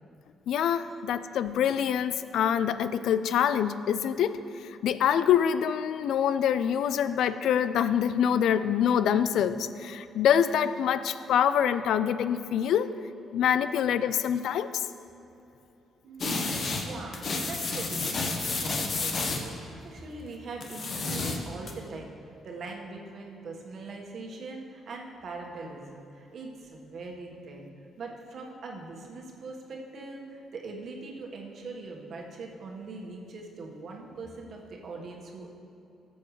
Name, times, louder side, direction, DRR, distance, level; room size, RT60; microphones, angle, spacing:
voice 1, 0.5-4.4 4.6-12.9 13.3-14.9, left 9 dB, 75° left, 13 dB, 0.3 m, -25 dB
voice 2, 16.0-17.2 17.5-22.1 22.4-27.7 28.0-35.5, right 3 dB, 60° right, 0 dB, 1.4 m, -42 dB
sound 1, 16.2-16.9 17.1-19.5 20.6-21.7, left 3 dB, 50° left, 1.1 m, -30 dB
14.0 x 7.1 x 3.2 m, 2.9 s
cardioid pair, 90°, 0 cm